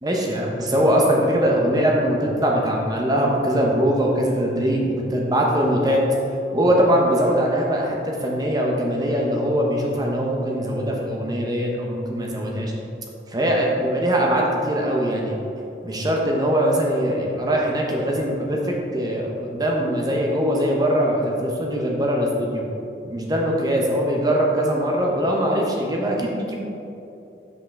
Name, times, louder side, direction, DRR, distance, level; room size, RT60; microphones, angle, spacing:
voice 1, 0.0-6.0 6.5-12.7 13.3-15.4 15.8-22.6 23.0-26.6, equal, 20° right, -1 dB, 0.7 m, -21 dB
5.5 x 5.3 x 3.6 m, 2.8 s
head